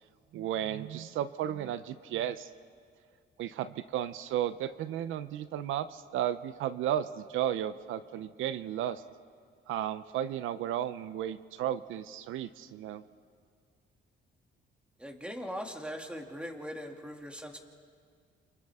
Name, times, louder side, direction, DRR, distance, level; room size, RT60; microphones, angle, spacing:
voice 1, 0.3-2.5 3.4-9.0 9.7-13.0, right 11 dB, 85° right, 13 dB, 0.7 m, -34 dB
voice 2, 15.0-17.6, equal, 5° right, 2 dB, 2.5 m, -40 dB
28.5 x 27.5 x 3.6 m, 2.2 s
cardioid pair, 90°, 20 cm